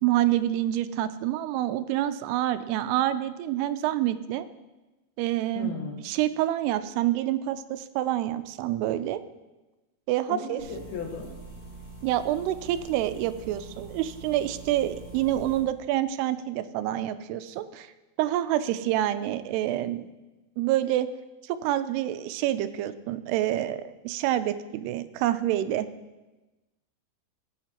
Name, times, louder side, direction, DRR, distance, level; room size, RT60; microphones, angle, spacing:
voice 1, 0.0-4.5 5.2-5.7 6.0-9.2 10.1-10.6 12.0-17.9 18.2-20.1 20.6-21.1 21.4-25.9, right 13 dB, 85° right, 12 dB, 2.6 m, -27 dB
voice 2, 5.5-6.0 10.3-11.3, left 5 dB, 75° left, 1 dB, 3.2 m, -36 dB
sound 1, 10.6-15.6, right 2 dB, 40° right, 4.3 m, -44 dB
16.0 x 8.3 x 2.9 m, 1.1 s
omnidirectional pair, 4.6 m